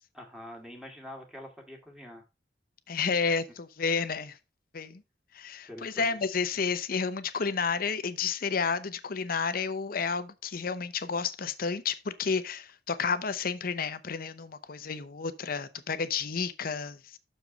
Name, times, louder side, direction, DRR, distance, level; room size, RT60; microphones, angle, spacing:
voice 1, 0.1-2.2 5.7-6.1, left 1 dB, 5° right, 2.1 m, -45 dB
voice 2, 2.9-4.4 4.7-5.0 5.3-17.2, left 5 dB, 55° left, 0.7 m, -31 dB
6.7 x 5.0 x 5.1 m
head